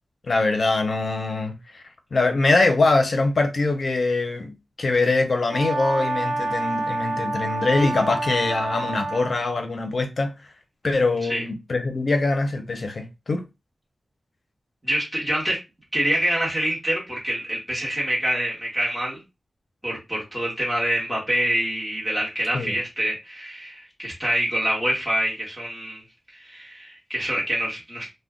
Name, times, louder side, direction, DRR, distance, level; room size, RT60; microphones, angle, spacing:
voice 1, 0.3-1.8 2.1-10.3 10.8-13.4 22.5-22.7, left 3 dB, 55° left, 0.7 m, -23 dB
Brass instrument, 5.5-9.4, right 2 dB, 85° right, 0.4 m, -28 dB
voice 2, 14.8-15.6 15.9-19.2 19.8-26.0 26.3-28.1, right 1 dB, ahead, 1.3 m, -26 dB
2.4 x 2.2 x 3.6 m
wide cardioid pair, 100°, 0 cm